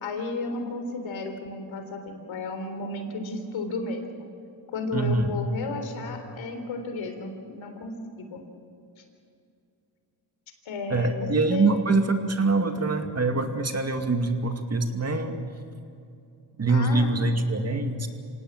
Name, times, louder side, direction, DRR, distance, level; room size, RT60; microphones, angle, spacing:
voice 1, 0.0-4.3 4.7-7.9 8.3-8.4 9.0-9.1 10.7-11.8 16.7-17.3, left 3 dB, 75° left, 6 dB, 3.8 m, -33 dB
voice 2, 4.9-5.3 10.9-15.4 16.6-18.1, right 3 dB, 35° right, 5 dB, 2.4 m, -24 dB
26.5 x 18.0 x 7.5 m, 2.5 s
cardioid pair, 75°, 46 cm